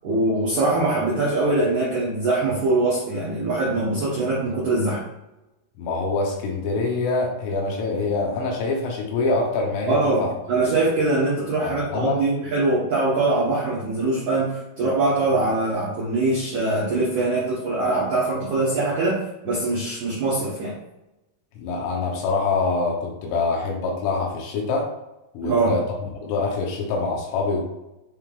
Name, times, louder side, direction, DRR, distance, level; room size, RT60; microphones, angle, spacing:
voice 1, 0.0-5.0 9.9-20.7 25.4-25.7, right 2 dB, 80° right, -7 dB, 1.7 m, -22 dB
voice 2, 5.8-10.3 10.6-10.8 11.6-12.2 21.6-24.9 25.4-25.8 26.2-27.6, left 3 dB, 80° left, -1 dB, 3.5 m, -25 dB
10.0 x 3.7 x 2.5 m, 0.93 s
omnidirectional pair, 5.9 m